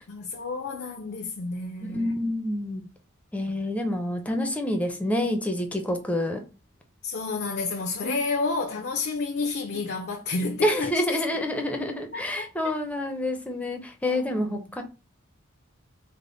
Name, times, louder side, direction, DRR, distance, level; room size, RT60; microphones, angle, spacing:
voice 1, 0.1-2.2 3.5-3.6 7.0-11.2 12.1-12.7 14.0-14.8, left 3 dB, 55° left, 0.5 m, -31 dB
voice 2, 1.9-2.9 3.3-6.4 8.0-8.2 10.6-14.8, left 1 dB, 5° left, 0.5 m, -28 dB
3.4 x 2.0 x 3.8 m
head